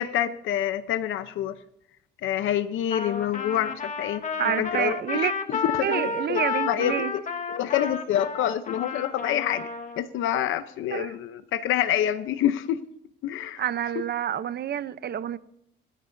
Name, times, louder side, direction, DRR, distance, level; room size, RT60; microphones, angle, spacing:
voice 1, 0.0-1.6 2.2-4.2 4.6-5.2 5.5-6.4 6.7-7.2 7.5-9.7 10.0-12.8 13.2-13.6 13.9-14.0, left 11 dB, 85° left, 0.8 m, -27 dB
Trumpet, 2.9-10.0, left 5 dB, 40° left, 1.6 m, -31 dB
voice 2, 4.4-5.3 5.8-7.1 10.9-11.1 13.6-15.4, right 10 dB, 55° right, 0.8 m, -28 dB
26.0 x 11.0 x 2.7 m
cardioid pair, 90°, 20 cm